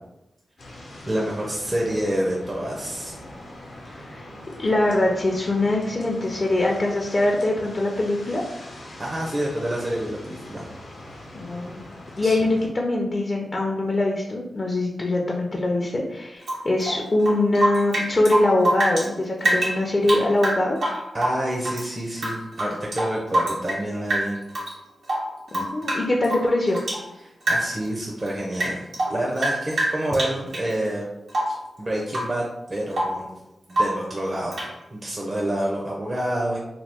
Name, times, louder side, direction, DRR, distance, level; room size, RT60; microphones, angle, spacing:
sound 1, 0.6-12.7, left 1 dB, 80° left, 0.8 m, -42 dB
voice 1, 1.1-3.1 9.0-10.6 12.2-12.5 21.1-24.4 27.2-31.1 31.5-32.4 32.7-33.3 33.7-34.6 34.9-36.6, right 1 dB, 40° right, -3 dB, 0.6 m, -28 dB
voice 2, 3.9-4.3 4.6-8.4 11.3-11.8 12.2-20.8 25.5-26.8, left 2 dB, 45° left, -1 dB, 0.5 m, -23 dB
Rain / Drip, 16.4-19.1 19.4-21.8 22.2-23.8 24.1-24.7 25.0-27.1 27.4-27.9 28.2-30.7 31.3-31.6 32.1-32.4 32.7-33.2 33.7-34.1 34.5-34.7, right 1 dB, 90° right, 1.1 m, -26 dB
2.9 x 2.3 x 3.4 m, 0.91 s
cardioid pair, 50°, 0 cm